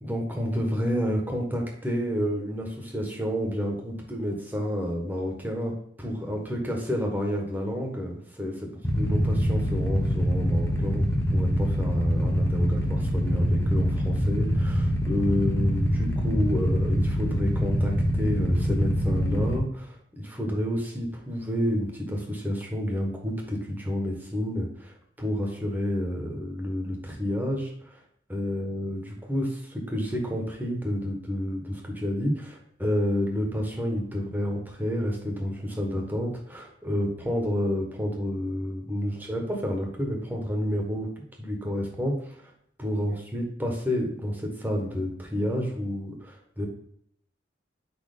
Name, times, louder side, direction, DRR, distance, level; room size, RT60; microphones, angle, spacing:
voice 1, 0.0-8.7 9.0-28.0 28.3-42.5 42.8-46.7, equal, 10° right, 0 dB, 1.2 m, -29 dB
Motorcycle / Idling, 8.8-19.6, equal, 15° left, 0.8 m, -25 dB
4.9 x 4.4 x 5.0 m, 0.69 s
head